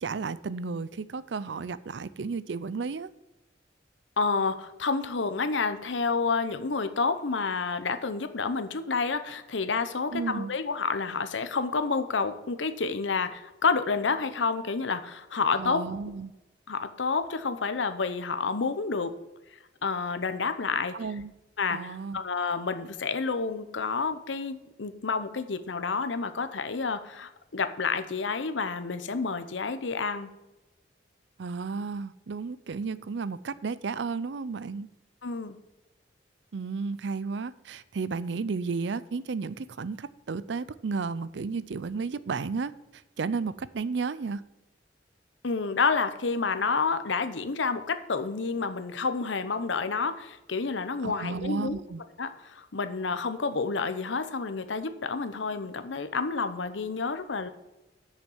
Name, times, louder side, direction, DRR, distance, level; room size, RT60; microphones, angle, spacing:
voice 1, 0.0-3.1 10.1-10.5 15.6-16.3 20.9-21.3 21.7-22.2 31.4-34.9 36.5-42.7 43.2-44.4 51.0-52.0, right 4 dB, 75° right, 17 dB, 0.5 m, -33 dB
voice 2, 4.2-15.8 16.7-19.1 19.8-20.9 21.6-30.3 35.2-35.6 45.4-51.8 52.2-57.5, left 4 dB, 90° left, 10 dB, 0.9 m, -29 dB
8.2 x 6.6 x 7.2 m, 1.0 s
head